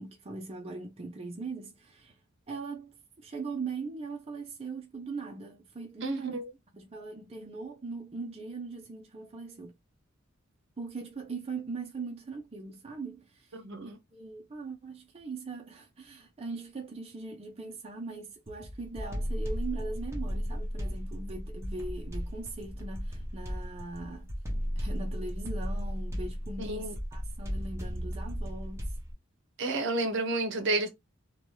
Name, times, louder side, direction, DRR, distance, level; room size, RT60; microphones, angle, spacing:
voice 1, 0.0-2.2 2.5-2.9 3.2-6.4 6.7-9.7 10.8-24.3 24.8-28.9, right 3 dB, 30° right, 0.4 m, -40 dB
voice 2, 6.0-6.4 13.5-14.0 26.6-26.9 29.6-30.9, right 2 dB, 60° right, 0.7 m, -30 dB
sound 1, 18.5-29.1, equal, 15° right, 0.8 m, -35 dB
2.7 x 2.2 x 3.2 m
head